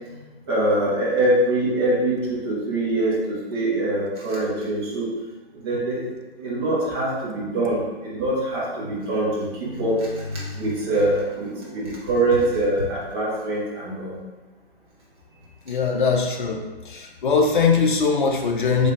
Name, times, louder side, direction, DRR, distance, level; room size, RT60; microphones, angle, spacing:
voice 1, 0.5-5.1 5.5-14.2, right 1 dB, 25° right, -6 dB, 1.1 m, -24 dB
voice 2, 15.7-16.6 16.9-18.9, left 5 dB, 50° left, 2 dB, 0.7 m, -21 dB
4.0 x 3.3 x 3.2 m, 1.2 s
figure-of-eight pair, 145°, 32 cm